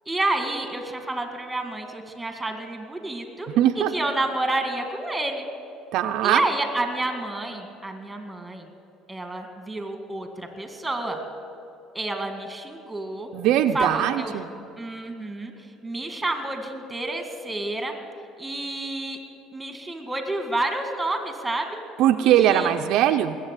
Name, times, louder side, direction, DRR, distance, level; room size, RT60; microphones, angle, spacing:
voice 1, 0.1-3.5 3.7-5.4 6.2-8.7 9.1-11.2 11.9-13.3 13.7-14.3 14.8-15.5 15.8-17.9 18.4-19.2 19.5-21.8 22.2-22.7, right 2 dB, 10° right, 5 dB, 1.9 m, -29 dB
voice 2, 3.6-3.9 5.9-6.4 13.3-14.5 22.0-23.4, right 11 dB, 70° right, 6 dB, 0.6 m, -20 dB
20.5 x 8.1 x 8.2 m, 2.5 s
cardioid pair, 110°, 0 cm